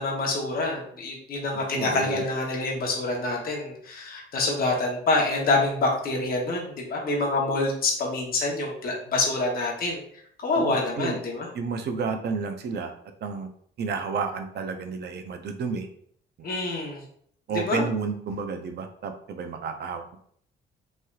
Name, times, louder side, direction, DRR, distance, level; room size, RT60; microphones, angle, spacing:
voice 1, 0.0-10.0 10.4-11.5 16.4-17.0 17.5-17.8, left 2 dB, 50° left, -2 dB, 0.9 m, -26 dB
voice 2, 1.5-2.2 10.5-11.2 11.5-12.9 13.2-13.5 13.8-15.9 17.5-20.2, right 5 dB, 60° right, 6 dB, 0.5 m, -31 dB
3.2 x 2.8 x 2.3 m, 0.63 s
cardioid pair, 90°, 20 cm